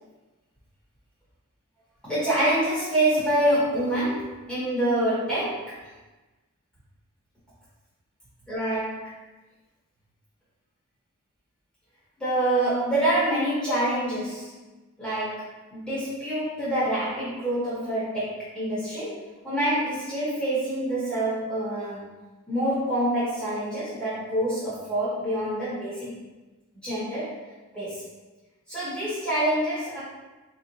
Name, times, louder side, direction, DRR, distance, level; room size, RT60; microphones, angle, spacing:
voice 1, 2.0-5.8 8.5-9.1 12.2-14.5 15.0-22.1 22.5-26.2 26.8-27.4 27.7-28.0 28.7-30.0, right 1 dB, 5° left, -11 dB, 1.0 m, -26 dB
4.3 x 2.9 x 2.7 m, 1.2 s
head